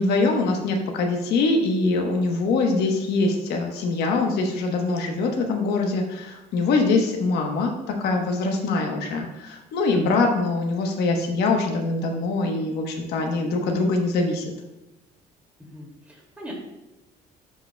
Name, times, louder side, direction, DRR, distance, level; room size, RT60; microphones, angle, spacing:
voice 1, 0.0-7.7 8.0-14.5, left 3 dB, 75° left, 2 dB, 1.1 m, -23 dB
voice 2, 15.6-16.5, equal, 10° right, -3 dB, 2.4 m, -41 dB
11.5 x 4.9 x 2.3 m, 0.97 s
cardioid pair, 110°, 17 cm